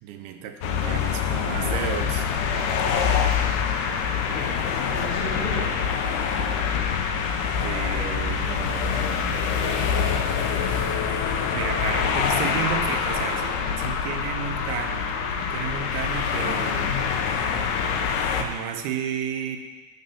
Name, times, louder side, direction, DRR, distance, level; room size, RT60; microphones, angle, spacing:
voice 1, 0.0-2.3 7.6-8.9 11.5-15.1 15.4-17.0 18.4-19.6, right 8 dB, 80° right, 5 dB, 2.6 m, -32 dB
sound 1, 0.6-18.5, left 6 dB, 85° left, 1.8 m, -25 dB
voice 2, 4.0-5.8 9.9-10.9, equal, 35° left, -9 dB, 3.4 m, -37 dB
7.6 x 5.3 x 5.5 m, 1.2 s
omnidirectional pair, 4.5 m